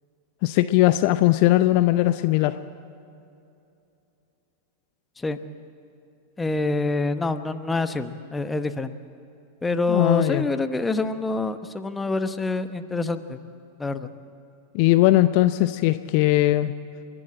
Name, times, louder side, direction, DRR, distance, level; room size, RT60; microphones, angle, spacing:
voice 1, 0.4-2.6 9.9-10.5 14.7-16.7, left 16 dB, 45° left, 13 dB, 0.6 m, -19 dB
voice 2, 6.4-8.9 9.6-13.4 13.8-14.1, left 3 dB, 10° left, 11 dB, 1.0 m, -26 dB
29.5 x 12.0 x 8.7 m, 2.7 s
figure-of-eight pair, 90°, 0 cm